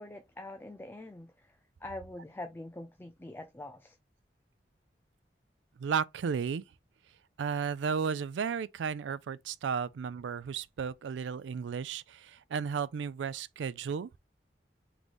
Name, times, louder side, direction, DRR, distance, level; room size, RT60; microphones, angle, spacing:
voice 1, 0.0-4.0, left 1 dB, 10° left, 0.4 m, -44 dB
voice 2, 5.8-6.6 7.4-14.1, right 6 dB, 90° right, 0.4 m, -34 dB
3.9 x 3.1 x 3.4 m
head